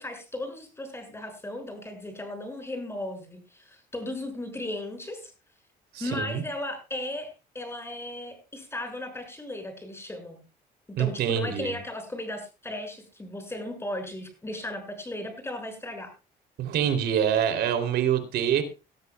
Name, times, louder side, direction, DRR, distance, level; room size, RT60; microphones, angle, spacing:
voice 1, 0.0-5.3 6.0-10.4 11.0-16.1, left 1 dB, 15° left, 6 dB, 6.4 m, -36 dB
voice 2, 5.9-6.4 11.0-11.7 16.6-18.6, right 9 dB, 75° right, 9 dB, 3.3 m, -25 dB
20.0 x 13.0 x 2.3 m, 0.30 s
cardioid pair, 110°, 17 cm